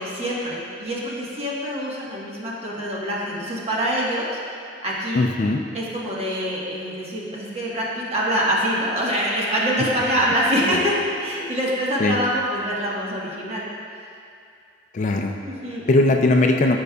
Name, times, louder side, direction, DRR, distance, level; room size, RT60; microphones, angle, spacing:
voice 1, 0.0-4.3 4.8-5.3 5.7-13.6 15.4-15.8, equal, 35° right, -5 dB, 1.3 m, -25 dB
voice 2, 5.1-5.6 10.7-10.8 12.0-12.2 14.9-15.4 15.9-16.8, left 2 dB, 40° left, 3 dB, 0.4 m, -19 dB
13.0 x 5.4 x 2.3 m, 2.5 s
head